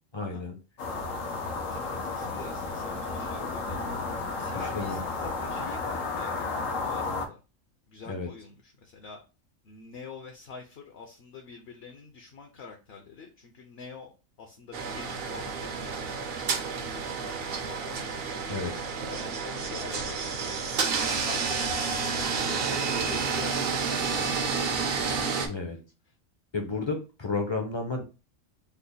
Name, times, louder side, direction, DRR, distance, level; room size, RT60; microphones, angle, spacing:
voice 1, 0.1-0.5 1.9-2.0 4.7-5.0 8.1-8.3 18.5-18.8 25.5-25.8 26.5-28.0, left 3 dB, 35° left, 2 dB, 0.5 m, -32 dB
sound 1, 0.8-7.3, left 3 dB, 85° left, 1.2 m, -33 dB
voice 2, 1.7-3.8 4.3-7.4 7.9-9.2 9.6-16.2 16.7-18.2 19.1-20.7 21.1-25.4, left 5 dB, 60° left, 3 dB, 0.8 m, -46 dB
sound 2, 14.7-25.5, right 5 dB, 60° right, 0.7 m, -30 dB
3.3 x 2.1 x 3.8 m, 0.30 s
omnidirectional pair, 1.3 m